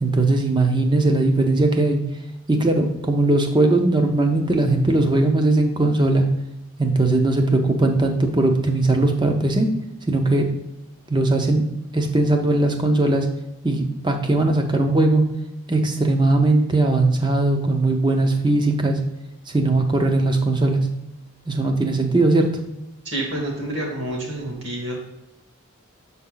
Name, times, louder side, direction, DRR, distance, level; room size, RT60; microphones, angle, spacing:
voice 1, 0.0-2.0 2.5-6.3 6.8-9.7 10.1-10.5 11.1-11.6 11.9-13.3 13.6-15.2 15.7-19.0 19.5-20.9 21.5-22.5, right 2 dB, 20° right, 4 dB, 0.7 m, -19 dB
voice 2, 23.0-25.0, right 1 dB, 55° right, 0 dB, 1.9 m, -28 dB
6.9 x 4.3 x 3.9 m, 0.92 s
head